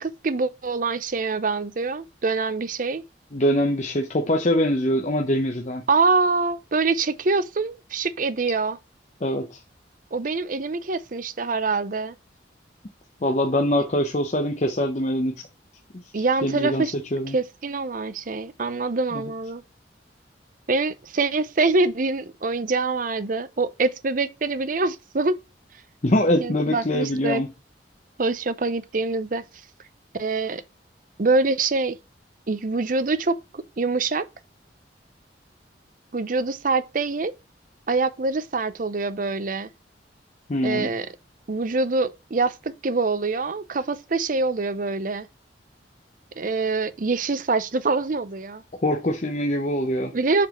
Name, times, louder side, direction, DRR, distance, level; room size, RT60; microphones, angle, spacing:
voice 1, 0.0-3.0 5.9-8.8 10.1-12.1 16.1-16.9 17.3-19.6 20.7-25.4 26.4-27.4 28.2-29.4 30.2-30.6 31.2-32.0 32.5-34.2 36.1-37.3 37.9-39.7 40.6-41.1 41.5-45.3 46.4-48.6 50.1-50.5, right 3 dB, 45° right, 0.6 m, -25 dB
voice 2, 3.3-5.8 9.2-9.6 13.2-15.5 16.1-17.4 19.1-19.2 26.0-27.5 40.5-40.9 48.8-50.1, left 1 dB, 40° left, 0.8 m, -23 dB
7.4 x 4.2 x 3.0 m
head